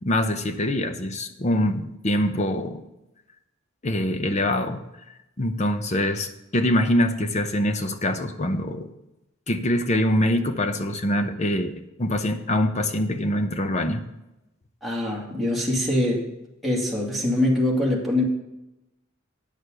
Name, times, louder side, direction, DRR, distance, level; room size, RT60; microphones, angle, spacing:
voice 1, 0.0-2.8 3.8-4.9 5.4-6.3 6.5-8.9 9.5-14.1, left 1 dB, 35° left, 8 dB, 0.8 m, -24 dB
voice 2, 14.8-16.2 16.6-18.2, left 1 dB, ahead, -3 dB, 2.3 m, -23 dB
9.1 x 6.5 x 6.6 m, 0.91 s
head